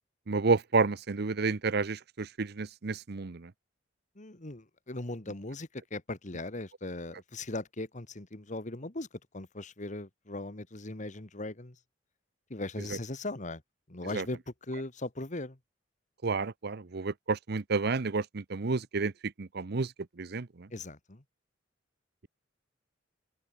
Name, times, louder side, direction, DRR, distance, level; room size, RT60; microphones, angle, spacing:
voice 1, 0.3-3.5 12.9-13.0 14.1-14.3 16.2-19.9 20.2-20.7, right 4 dB, 55° right, 0.8 m, -30 dB
voice 2, 4.1-9.1 9.3-11.8 12.5-13.6 13.9-14.4 14.7-15.6 20.7-21.2, left 2 dB, 40° left, 1.8 m, -39 dB
open air
head